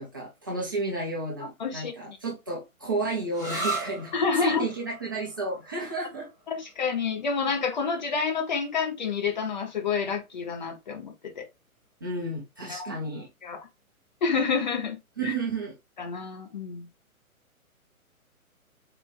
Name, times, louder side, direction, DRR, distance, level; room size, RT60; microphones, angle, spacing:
voice 1, 0.0-6.3 12.0-13.3 15.2-15.7, right 2 dB, 15° right, 0.5 m, -32 dB
voice 2, 1.6-2.2 4.1-4.6 6.5-11.5 12.7-12.9 13.4-13.6 14.2-15.0 15.2-15.4 16.0-16.9, left 5 dB, 30° left, 0.7 m, -28 dB
sound 1, 3.3-10.7, right 3 dB, 10° left, 0.9 m, -40 dB
4.1 x 2.8 x 3.2 m
figure-of-eight pair, 130°, 44 cm